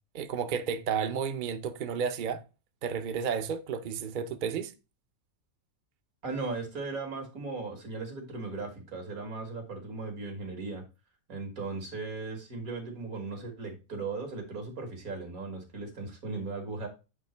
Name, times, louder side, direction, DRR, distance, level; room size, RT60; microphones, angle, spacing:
voice 1, 0.1-2.4 2.8-4.7, right 7 dB, 50° right, 0.6 m, -32 dB
voice 2, 6.2-10.8 11.3-16.9, right 3 dB, 85° right, 2.3 m, -37 dB
8.4 x 2.9 x 4.4 m
omnidirectional pair, 1.5 m